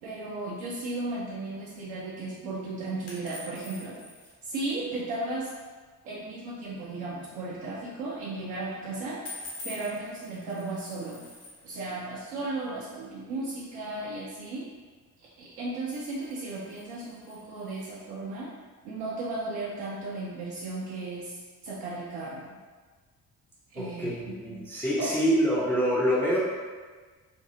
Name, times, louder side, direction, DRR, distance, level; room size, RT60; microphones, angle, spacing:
voice 1, 0.0-4.0 4.4-5.5 6.0-11.3 11.6-14.6 15.2-18.5 18.8-22.5 23.7-24.7 25.0-25.2, right 2 dB, 65° right, -6 dB, 0.6 m, -35 dB
sound 1, 3.1-4.3 9.3-11.8 15.7-18.1, left 2 dB, 65° left, 0.9 m, -46 dB
voice 2, 23.8-26.4, equal, 5° left, -8 dB, 0.4 m, -26 dB
2.6 x 2.6 x 2.7 m, 1.4 s
figure-of-eight pair, 45°, 47 cm